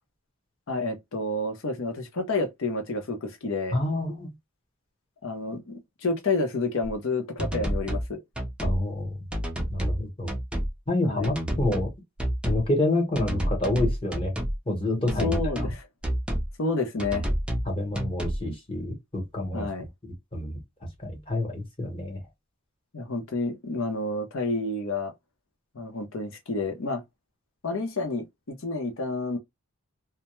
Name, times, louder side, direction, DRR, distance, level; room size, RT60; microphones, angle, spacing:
voice 1, 0.7-3.8 5.2-8.2 11.0-11.3 15.0-15.9 16.6-17.3 19.5-19.9 22.9-25.1 25.7-27.0 27.6-29.4, left 3 dB, 70° left, 0.7 m, -29 dB
voice 2, 3.7-4.3 8.6-9.2 9.7-10.3 10.9-11.9 12.4-14.3 14.7-15.7 17.7-19.7 20.3-20.6 21.0-22.2, left 2 dB, 25° left, 0.9 m, -28 dB
sound 1, 6.8-6.9 7.4-8.1 8.4-8.8 9.3-10.0 10.3-10.7 11.2-11.9 12.2-12.7 13.1-14.6 15.1-15.7 16.0-16.5 17.0-17.7 17.9-18.4, equal, 5° right, 0.4 m, -29 dB
2.2 x 2.0 x 2.9 m
head